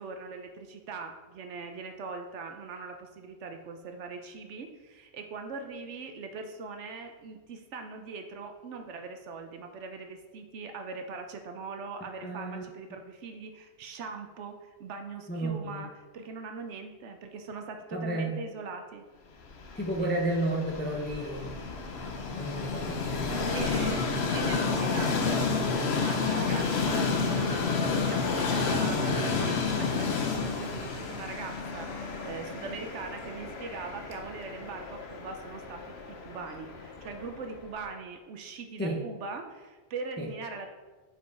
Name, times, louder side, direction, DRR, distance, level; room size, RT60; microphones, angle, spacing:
voice 1, 0.0-19.0 23.5-40.7, right 4 dB, 75° right, 5 dB, 1.0 m, -41 dB
voice 2, 12.0-12.6 15.3-15.8 17.9-18.3 19.8-21.5 22.3-23.8 38.8-39.0 40.2-40.3, right 1 dB, 10° left, -1 dB, 0.6 m, -32 dB
Train, 19.5-37.6, left 4 dB, 65° left, 1.0 m, -31 dB
5.4 x 4.9 x 4.6 m, 1.3 s
omnidirectional pair, 1.2 m